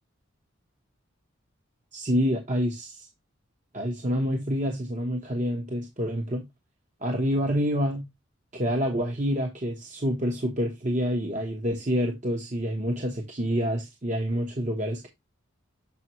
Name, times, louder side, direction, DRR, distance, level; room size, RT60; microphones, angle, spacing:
voice 1, 1.9-3.1 3.7-6.4 7.0-8.0 8.5-15.1, equal, 35° right, 1.2 m, -27 dB
7.5 x 5.1 x 3.1 m
head